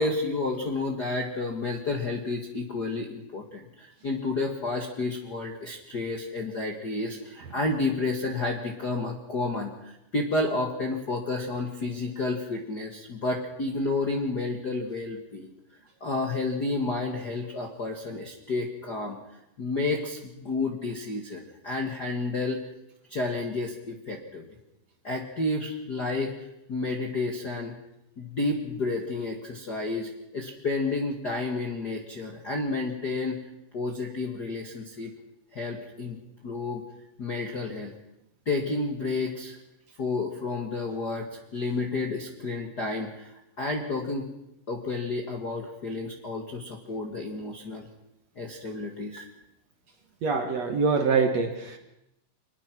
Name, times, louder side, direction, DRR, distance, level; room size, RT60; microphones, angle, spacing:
voice 1, 0.0-15.5 16.0-19.2 19.6-22.6 23.1-24.5 25.0-26.3 26.7-27.7 28.2-33.4 33.7-35.1 35.5-36.2 36.4-36.8 37.2-37.9 38.4-39.6 40.0-44.3 44.7-47.9 48.3-49.3, left 3 dB, 40° left, 1 dB, 1.4 m, -31 dB
voice 2, 50.2-51.8, right 5 dB, 55° right, 5 dB, 2.3 m, -24 dB
24.5 x 20.0 x 6.1 m, 0.86 s
omnidirectional pair, 4.6 m